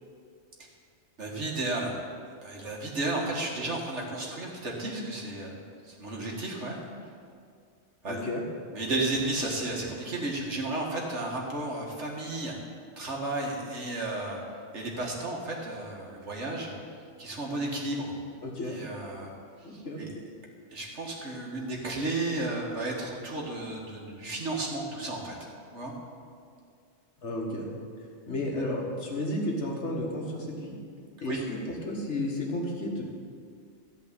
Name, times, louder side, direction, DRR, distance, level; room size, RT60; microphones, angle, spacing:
voice 1, 1.2-2.0 2.4-5.6 5.8-6.8 8.0-8.3 8.7-12.6 13.0-14.4 14.7-16.7 17.2-18.2 18.7-19.3 19.7-20.1 20.7-25.3 25.7-25.9 31.2-31.4, right 2 dB, 80° right, -1 dB, 2.2 m, -33 dB
voice 2, 8.1-8.4 18.4-18.8 19.6-20.2 27.2-27.7 28.3-30.8 31.2-33.0, left 1 dB, 80° left, -1 dB, 2.2 m, -33 dB
14.0 x 5.3 x 9.0 m, 2.2 s
omnidirectional pair, 1.2 m